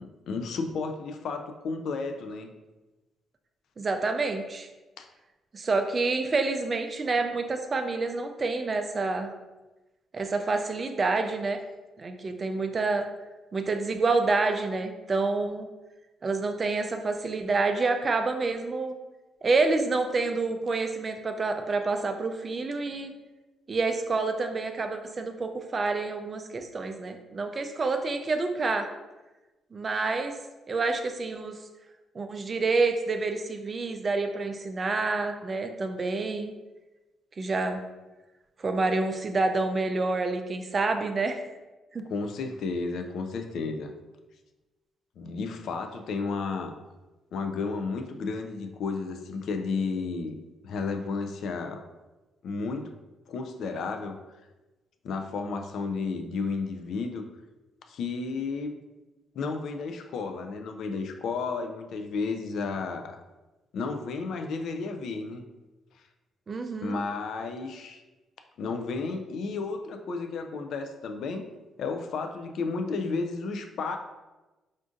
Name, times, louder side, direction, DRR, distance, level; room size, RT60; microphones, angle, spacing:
voice 1, 0.0-2.5 5.0-5.1 10.4-10.5 42.1-43.9 45.2-46.7 47.3-50.3 50.6-51.8 52.4-52.9 53.3-54.2 55.0-57.2 57.9-58.7 59.3-63.2 63.7-65.4 66.8-68.0 68.6-71.4 71.8-74.0, left 4 dB, 70° left, 6 dB, 0.3 m, -32 dB
voice 2, 3.8-4.7 5.5-9.3 10.1-11.6 12.0-13.1 13.5-15.7 16.2-18.9 19.4-23.1 23.7-28.9 29.7-30.3 30.7-31.6 32.1-36.5 37.4-37.8 38.6-41.4 41.9-42.0 66.5-67.0, right 3 dB, 35° right, 6 dB, 0.3 m, -28 dB
3.7 x 2.5 x 2.5 m, 1.1 s
cardioid pair, 90°, 0 cm